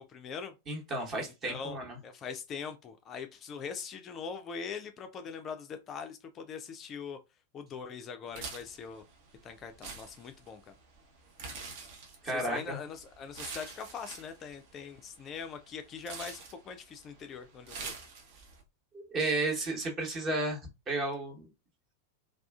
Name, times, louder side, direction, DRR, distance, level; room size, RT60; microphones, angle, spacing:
voice 1, 0.1-0.5 1.2-7.2 7.5-9.0 9.4-10.6 12.3-17.9, left 6 dB, 30° left, 0.3 m, -42 dB
voice 2, 0.7-2.0 12.2-12.8 18.9-21.5, right 2 dB, 30° right, 0.9 m, -33 dB
sound 1, 8.3-18.6, right 4 dB, 50° right, 0.7 m, -47 dB
2.3 x 2.3 x 2.3 m
figure-of-eight pair, 90°, 0 cm